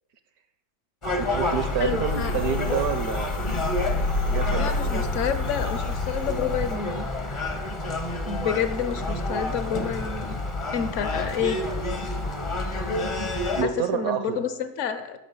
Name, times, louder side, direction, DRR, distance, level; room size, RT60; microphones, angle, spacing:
Gull seagull, 1.0-13.6, left 2 dB, 30° left, 0.6 m, -29 dB
voice 1, 1.2-3.5 4.3-4.8 8.8-9.0 13.5-14.4, right 8 dB, 70° right, 11 dB, 1.1 m, -28 dB
sound 1, 1.4-6.8, left 3 dB, 80° left, 1.3 m, -30 dB
voice 2, 1.8-2.5 4.5-7.1 8.3-10.4 10.7-11.6 13.6-15.2, left 7 dB, 60° left, 10 dB, 0.8 m, -29 dB
12.5 x 5.5 x 5.5 m, 0.99 s
omnidirectional pair, 1.8 m